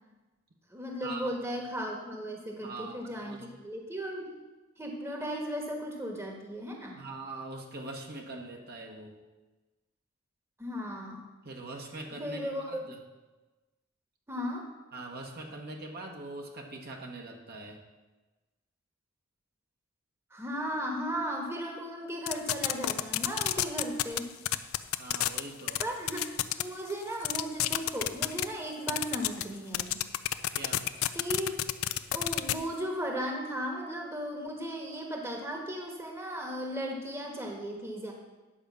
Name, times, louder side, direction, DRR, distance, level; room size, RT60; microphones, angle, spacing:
voice 1, 0.7-4.3 4.8-7.0 10.6-11.2 12.2-12.9 14.3-14.7 20.3-24.3 25.8-30.0 31.1-31.6 32.1-38.1, equal, 15° right, 1 dB, 1.3 m, -36 dB
voice 2, 2.6-3.4 7.0-9.2 11.4-13.0 14.9-17.8 25.0-25.8 30.5-30.9, right 2 dB, 50° right, 1 dB, 1.3 m, -42 dB
sound 1, 22.3-24.2 24.4-25.4 25.7-25.8 26.1-26.6 26.9-27.0 27.2-28.4 28.9-29.4 29.7-32.5, left 13 dB, 80° left, 0.5 m, -28 dB
10.0 x 5.2 x 7.1 m, 1.2 s
head